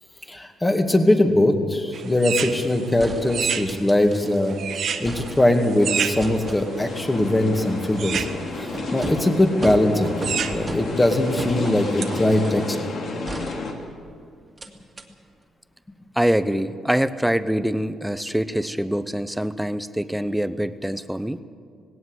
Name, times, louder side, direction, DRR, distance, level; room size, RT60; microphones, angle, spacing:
voice 1, 0.3-4.5 5.0-8.3 8.6-12.8, left 1 dB, 15° left, 4 dB, 2.3 m, -21 dB
sound 1, 1.9-12.7, right 7 dB, 65° right, 1.4 m, -32 dB
sound 2, 3.0-4.5 4.8-5.8 6.2-12.7 13.3-14.1 14.6-14.7 15.0-15.1, right 1 dB, 25° right, 2.2 m, -36 dB
sound 3, 5.8-13.7, left 3 dB, 60° left, 3.0 m, -32 dB
voice 2, 16.2-21.4, equal, 5° right, 13 dB, 0.8 m, -24 dB
19.0 x 17.5 x 8.1 m, 2.2 s
cardioid pair, 90°, 0 cm